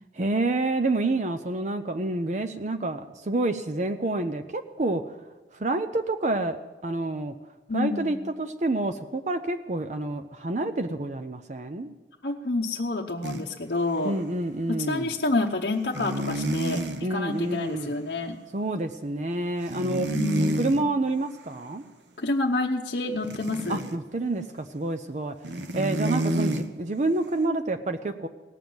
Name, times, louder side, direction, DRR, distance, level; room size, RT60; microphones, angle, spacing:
voice 1, 0.1-5.0 5.6-7.3 7.7-11.9 14.0-15.1 17.0-17.9 18.5-20.1 20.6-21.8 23.7-25.3 25.7-28.3, right 2 dB, 40° right, 8 dB, 0.6 m, -28 dB
voice 2, 7.7-8.2 12.2-14.1 14.7-18.4 20.1-20.7 22.2-23.8, left 2 dB, 55° left, -2 dB, 0.9 m, -28 dB
sound 1, 13.2-13.4 14.0-14.1 15.9-17.0 19.7-20.8 23.2-24.0 25.4-26.7, right 1 dB, 75° right, 1.0 m, -28 dB
18.0 x 7.1 x 9.4 m, 1.3 s
head